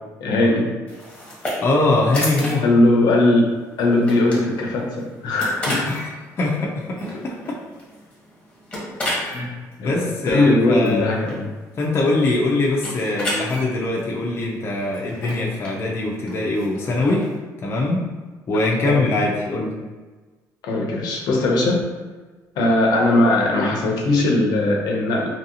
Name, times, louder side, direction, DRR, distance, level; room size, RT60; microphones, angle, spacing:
voice 1, 0.2-0.7 2.6-3.5 3.8-5.9 9.2-9.5 9.8-11.5 18.8-19.1 20.6-21.9 22.6-25.3, left 2 dB, 80° left, -1 dB, 0.6 m, -19 dB
sound 1, 0.9-17.4, left 1 dB, 15° left, 1.0 m, -33 dB
voice 2, 1.6-2.6 5.8-7.6 9.8-11.3 11.8-17.3 17.6-18.0 18.5-19.8, left 2 dB, 35° left, -2 dB, 0.5 m, -22 dB
2.8 x 2.7 x 2.7 m, 1.3 s
cardioid pair, 135°, 7 cm